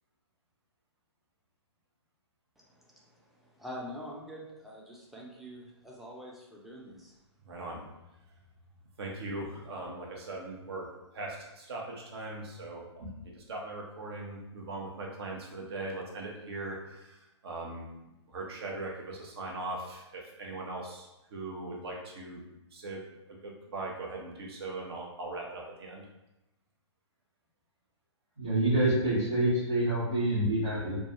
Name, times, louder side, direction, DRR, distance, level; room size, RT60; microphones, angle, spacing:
voice 1, 2.6-7.1, equal, ahead, -4 dB, 0.4 m, -45 dB
voice 2, 7.5-7.8 9.0-10.9 11.1-17.9 18.3-22.4 22.7-23.0 23.3-26.0, right 2 dB, 60° right, -1 dB, 0.7 m, -40 dB
voice 3, 28.4-31.0, right 1 dB, 85° right, -11 dB, 1.2 m, -27 dB
2.3 x 2.3 x 2.8 m, 0.95 s
figure-of-eight pair, 125°, 15 cm